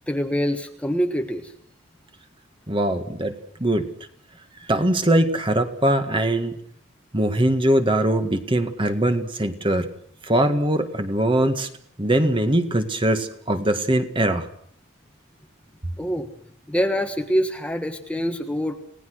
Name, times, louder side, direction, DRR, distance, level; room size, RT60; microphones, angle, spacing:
voice 1, 0.1-1.5 16.0-16.3 16.7-18.8, equal, 5° left, 6 dB, 1.4 m, -25 dB
voice 2, 2.7-3.9 4.7-6.6 7.1-9.9 10.2-11.7 12.0-14.5, right 1 dB, 25° right, 8 dB, 1.9 m, -21 dB
30.0 x 18.5 x 6.4 m, 0.62 s
head